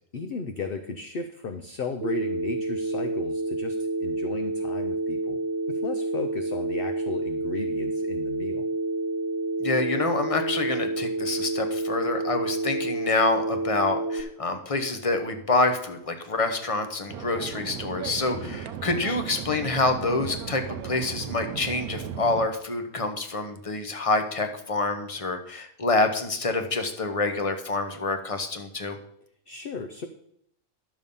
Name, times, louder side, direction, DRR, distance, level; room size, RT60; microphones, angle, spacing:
voice 1, 0.1-5.4 5.7-8.7 18.3-18.6 29.5-30.1, left 4 dB, 50° left, 7 dB, 0.8 m, -35 dB
Telephone, 2.0-14.2, right 2 dB, 60° right, 1.3 m, -29 dB
voice 2, 9.6-29.0, left 3 dB, 25° left, 7 dB, 1.1 m, -27 dB
sound 1, 17.1-22.5, right 8 dB, 85° right, 1.1 m, -36 dB
11.5 x 6.9 x 5.4 m, 0.72 s
omnidirectional pair, 1.5 m